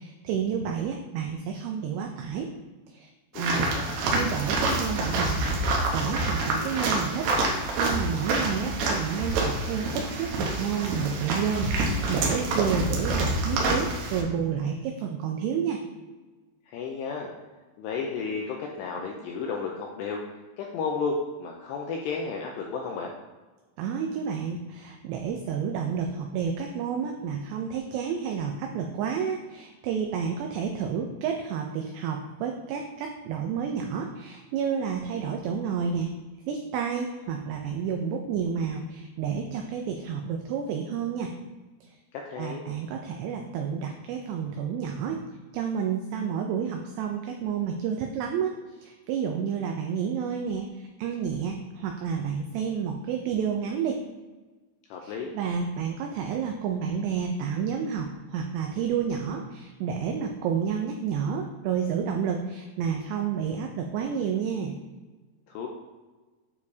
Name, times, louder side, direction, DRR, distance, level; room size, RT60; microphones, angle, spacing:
voice 1, 0.0-2.5 2.9-3.1 3.4-3.8 4.0-15.8 23.8-36.1 36.5-41.3 42.3-45.2 45.5-54.0 55.0-64.8, right 7 dB, 90° right, 3 dB, 2.3 m, -30 dB
voice 2, 3.3-3.9 16.7-17.3 17.8-20.2 20.6-23.1 42.1-42.6 54.9-55.3 65.5-65.7, left 5 dB, 90° left, 0 dB, 2.4 m, -33 dB
sound 1, 3.4-14.2, right 2 dB, 70° right, 2.8 m, -27 dB
9.2 x 4.8 x 2.7 m, 1.3 s
omnidirectional pair, 5.4 m